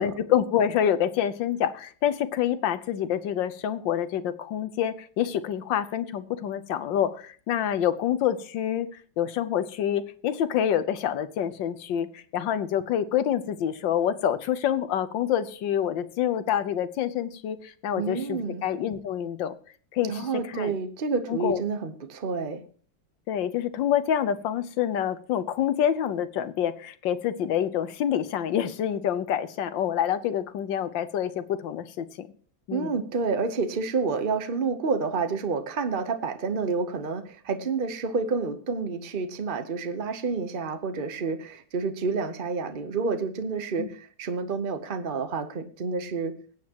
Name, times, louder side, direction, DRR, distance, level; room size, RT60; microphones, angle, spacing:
voice 1, 0.0-8.9 9.2-19.5 19.9-20.7 21.3-21.6 23.3-32.3 32.7-33.0 43.8-43.9, left 10 dB, 70° left, 13 dB, 1.5 m, -27 dB
voice 2, 18.0-18.6 20.1-22.6 32.7-46.3, right 4 dB, 40° right, 8 dB, 0.7 m, -29 dB
21.0 x 9.2 x 2.9 m, 0.43 s
omnidirectional pair, 2.1 m